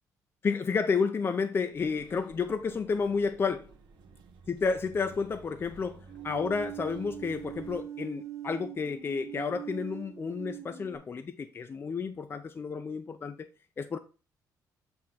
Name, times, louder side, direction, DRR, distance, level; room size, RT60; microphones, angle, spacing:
voice 1, 0.4-3.7 4.5-13.5 13.8-14.0, left 5 dB, 30° left, 0.4 m, -31 dB
sound 1, 1.7-7.8, right 3 dB, 85° right, 1.0 m, -54 dB
sound 2, 6.1-11.0, right 10 dB, 40° right, 0.8 m, -42 dB
7.6 x 2.6 x 5.7 m
cardioid pair, 105°, 7 cm